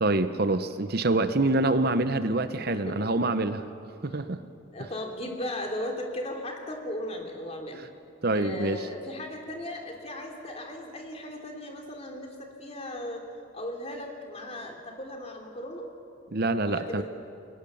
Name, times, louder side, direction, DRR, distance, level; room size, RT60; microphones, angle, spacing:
voice 1, 0.0-3.6 4.0-4.4 8.2-8.9 16.3-17.0, right 2 dB, 50° right, 11 dB, 0.9 m, -26 dB
voice 2, 2.7-3.1 4.7-7.9 8.3-13.2 13.5-15.9 16.6-17.0, left 1 dB, 30° left, 2 dB, 3.2 m, -37 dB
29.0 x 21.5 x 7.1 m, 2.6 s
head